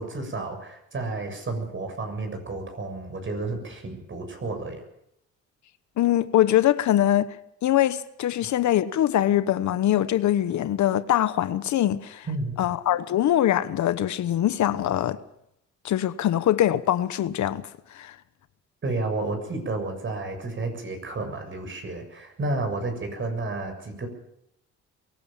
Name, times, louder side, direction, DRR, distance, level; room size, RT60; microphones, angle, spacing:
voice 1, 0.0-4.8 12.3-12.6 18.8-24.1, right 2 dB, 40° right, 7.0 m, -31 dB
voice 2, 6.0-7.3 7.6-12.3 12.6-15.2 15.8-17.7 17.9-18.1, left 12 dB, 70° left, 1.1 m, -23 dB
23.0 x 16.0 x 7.2 m
cardioid pair, 90°, 30 cm